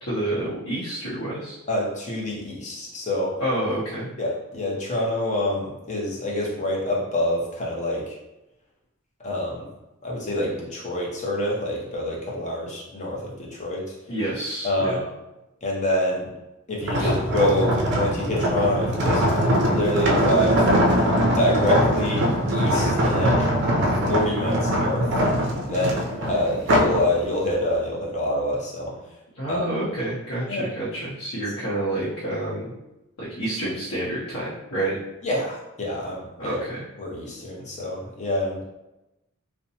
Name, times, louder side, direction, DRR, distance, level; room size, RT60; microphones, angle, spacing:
voice 1, 0.0-1.6 3.4-4.1 14.1-15.0 17.0-17.1 29.3-32.7 33.2-35.0 36.4-36.8, right 1 dB, 80° left, -9 dB, 0.8 m, -28 dB
voice 2, 1.7-3.3 4.2-8.2 9.2-9.6 10.0-13.9 14.6-15.1 15.6-16.3 16.7-19.2 19.7-20.7 21.3-22.2 22.5-23.5 24.1-25.1 25.7-28.9 29.5-29.7 30.5-30.7 35.2-36.6 37.0-38.6, left 1 dB, 35° left, -4 dB, 0.7 m, -26 dB
sound 1, 16.8-27.0 27.5-27.8, equal, 55° right, 0.4 m, -22 dB
2.7 x 2.1 x 2.7 m, 0.97 s
head